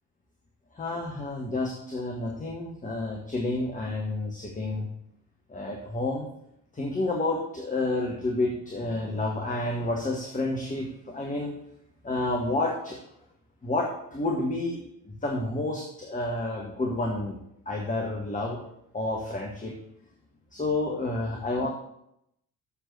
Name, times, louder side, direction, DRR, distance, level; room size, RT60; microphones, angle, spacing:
voice 1, 0.7-4.9 5.5-6.3 6.7-11.5 12.0-13.0 13.6-14.8 15.1-17.4 17.6-18.6 18.9-19.7 20.5-21.7, left 2 dB, 20° left, 0 dB, 1.7 m, -30 dB
7.3 x 6.9 x 7.8 m, 0.76 s
figure-of-eight pair, 50°, 43 cm